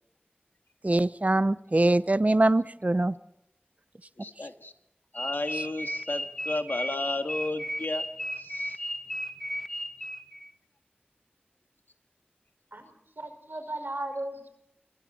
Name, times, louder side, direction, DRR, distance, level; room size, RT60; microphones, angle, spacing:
voice 1, 0.8-3.1 5.5-5.6, right 2 dB, 45° right, 14 dB, 0.7 m, -23 dB
voice 2, 4.2-4.7 5.1-8.1 8.4-8.8, left 2 dB, 75° left, 6 dB, 1.8 m, -33 dB
sound 1, 5.2-10.5, equal, 10° left, 1.8 m, -34 dB
voice 3, 12.7-14.5, right 1 dB, 75° right, 5 dB, 5.4 m, -36 dB
29.0 x 23.5 x 4.3 m, 0.84 s
wide cardioid pair, 45°, 4 cm